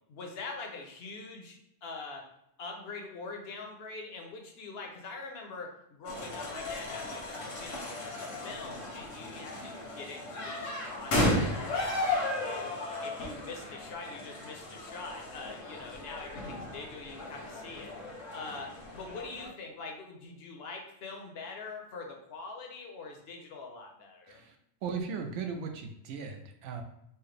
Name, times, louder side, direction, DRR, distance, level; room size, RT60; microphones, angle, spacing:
voice 1, 0.1-2.3 2.6-12.7 13.0-17.9 18.3-24.4, left 3 dB, 65° left, 2 dB, 0.8 m, -44 dB
sound 1, 6.0-19.5, left 1 dB, 85° left, 1.3 m, -35 dB
voice 2, 24.3-26.8, right 5 dB, 80° right, 5 dB, 0.9 m, -38 dB
4.4 x 2.1 x 3.2 m, 0.79 s
omnidirectional pair, 1.2 m